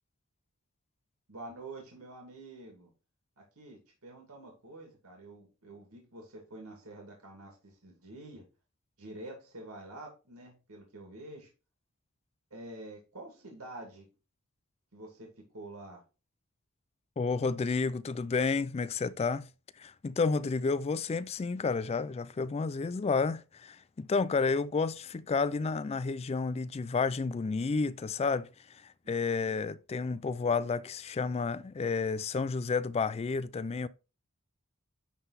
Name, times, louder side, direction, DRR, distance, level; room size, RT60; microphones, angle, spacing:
voice 1, 1.3-2.9 3.4-8.5 9.0-11.5 12.5-14.1 14.9-16.0, right 2 dB, 80° right, 2.4 m, -47 dB
voice 2, 17.2-19.5 19.8-33.9, left 4 dB, 30° left, 0.3 m, -31 dB
10.5 x 3.9 x 4.1 m
head